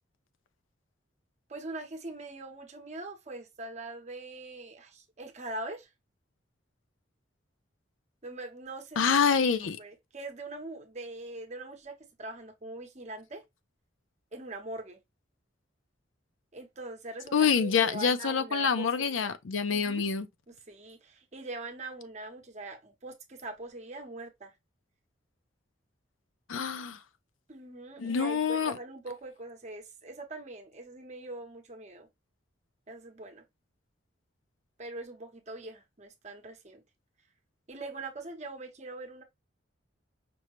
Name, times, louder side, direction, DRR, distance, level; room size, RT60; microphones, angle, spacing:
voice 1, 1.5-5.9 8.2-9.2 9.6-13.4 14.3-15.0 16.5-19.3 19.7-20.0 20.5-24.5 27.5-32.1 32.9-33.4 34.8-36.8 37.7-39.2, right 2 dB, 35° right, 0.8 m, -42 dB
voice 2, 9.0-9.8 17.3-20.3 26.5-27.0 28.0-28.7, left 6 dB, 90° left, 0.5 m, -26 dB
5.3 x 2.1 x 3.0 m
head